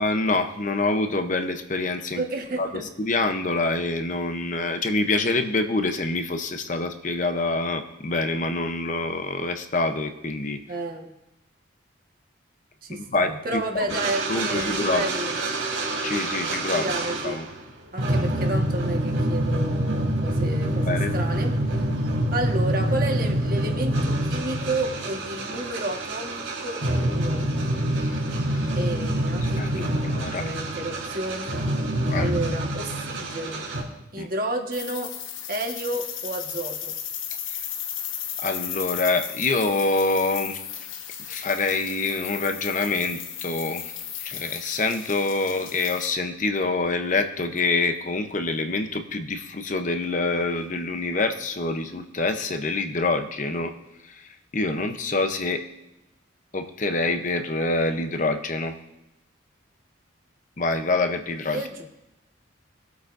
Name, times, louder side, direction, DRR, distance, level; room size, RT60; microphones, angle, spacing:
voice 1, 0.0-2.2 2.6-10.6 12.9-13.9 14.3-15.0 16.0-17.0 17.2-17.5 20.9-21.1 28.0-28.2 28.5-28.8 29.6-30.4 32.1-32.3 34.2-34.3 37.5-37.6 38.4-40.6 41.3-43.9 44.2-53.7 54.0-55.6 56.5-58.8 60.6-61.6, left 3 dB, 40° left, 7 dB, 0.7 m, -26 dB
voice 2, 2.1-2.9 10.7-11.1 12.8-15.4 16.7-17.4 17.9-21.6 22.3-27.4 28.7-29.9 30.4-31.6 32.2-33.6 34.1-35.1 35.5-36.9 61.5-61.8, right 1 dB, 45° right, 2 dB, 1.5 m, -31 dB
sound 1, 13.9-17.6 18.0-33.8, right 1 dB, 85° right, 3.0 m, -26 dB
sound 2, 34.7-46.1, left 9 dB, 75° left, 1.1 m, -35 dB
21.0 x 8.1 x 2.6 m, 0.93 s
head